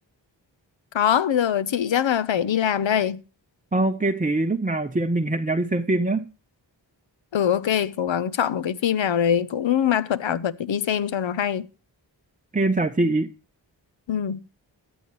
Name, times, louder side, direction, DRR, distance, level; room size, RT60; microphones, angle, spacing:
voice 1, 0.9-3.2 7.3-11.7 14.1-14.4, left 9 dB, 85° left, 0.8 m, -23 dB
voice 2, 3.7-6.3 12.5-13.3, right 2 dB, 20° right, 0.6 m, -23 dB
15.5 x 11.0 x 3.0 m
wide cardioid pair, 60°, 45 cm